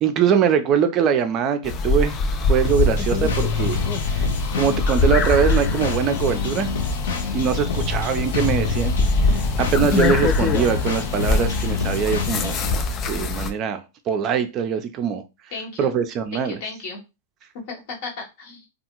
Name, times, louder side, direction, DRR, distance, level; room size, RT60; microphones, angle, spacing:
voice 1, 0.0-2.1 2.5-3.8 4.1-4.3 4.5-6.7 7.3-8.9 9.6-12.6 13.1-15.2 15.8-16.6, right 7 dB, 35° right, 0.4 m, -22 dB
sound 1, 1.6-13.5, left 3 dB, 30° left, 0.4 m, -23 dB
sound 2, 2.6-12.7, left 5 dB, 80° left, 0.6 m, -27 dB
voice 2, 15.5-15.9 16.3-17.0 17.7-18.6, left 3 dB, 60° left, 1.0 m, -34 dB
2.5 x 2.3 x 2.9 m
hypercardioid pair, 115°, 0 cm